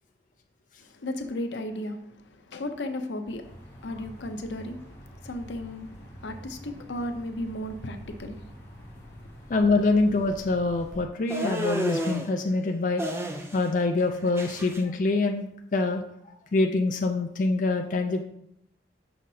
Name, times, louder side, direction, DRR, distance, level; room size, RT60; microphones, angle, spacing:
voice 1, 0.9-9.4, left 1 dB, 85° left, 0.7 m, -36 dB
sound 1, 3.4-11.0, equal, 10° left, 1.5 m, -46 dB
voice 2, 9.5-13.0 13.5-15.5 15.7-16.0 16.5-18.2, left 3 dB, 45° left, 0.4 m, -25 dB
sound 2, 11.3-12.3 13.0-13.7 14.0-14.8, equal, 15° right, 0.5 m, -31 dB
6.2 x 5.8 x 2.7 m
head